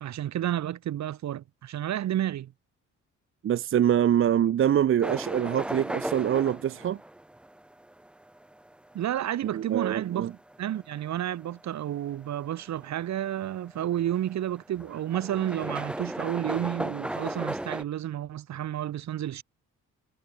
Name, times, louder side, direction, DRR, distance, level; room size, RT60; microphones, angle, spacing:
voice 1, 0.0-2.5 8.9-10.3 10.6-19.4, right 11 dB, 65° right, 1.4 m, -31 dB
voice 2, 3.4-7.0 9.5-10.3, right 10 dB, 45° right, 0.6 m, -24 dB
sound 1, 5.0-17.8, right 1 dB, 5° right, 0.4 m, -37 dB
cardioid pair, 90°, 30 cm